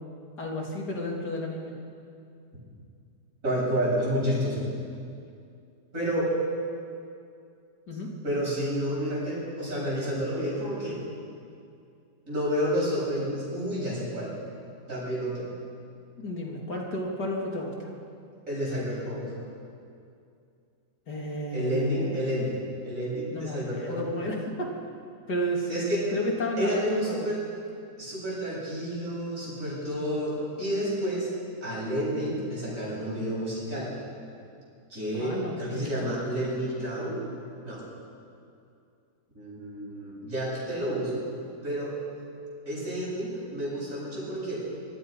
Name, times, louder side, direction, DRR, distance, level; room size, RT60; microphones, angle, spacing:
voice 1, 0.4-1.8 7.9-8.1 16.2-17.9 21.1-22.3 23.3-24.7 25.3-25.7 26.1-27.3 35.1-36.0, left 1 dB, 85° left, -1 dB, 3.7 m, -32 dB
voice 2, 3.4-4.7 5.9-6.3 8.2-11.0 12.3-14.3 14.9-15.5 18.5-19.2 21.5-24.1 25.7-26.0 26.6-27.4 28.0-31.3 31.6-33.9 34.9-37.2 37.6-37.8 39.4-41.2 41.6-41.9 42.7-44.6, equal, 55° right, -5 dB, 8.6 m, -30 dB
25.5 x 24.0 x 5.7 m, 2.5 s
omnidirectional pair, 1.7 m